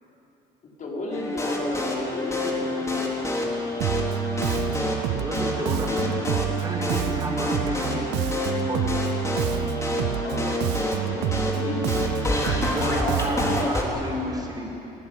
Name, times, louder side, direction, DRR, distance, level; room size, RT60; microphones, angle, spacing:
voice 1, 0.8-3.9 10.1-10.5 11.0-11.9 12.3-13.9, left 2 dB, 50° left, -2 dB, 5.3 m, -35 dB
sound 1, 1.1-13.8, left 2 dB, 15° left, 3.7 m, -28 dB
Bass guitar, 3.8-13.7, right 16 dB, 85° right, 0.5 m, -29 dB
voice 2, 5.2-8.2 8.6-8.9 11.1-11.3 12.6-14.6, right 1 dB, 25° right, -3 dB, 5.6 m, -32 dB
24.5 x 16.5 x 8.8 m, 3.0 s
cardioid pair, 110°, 17 cm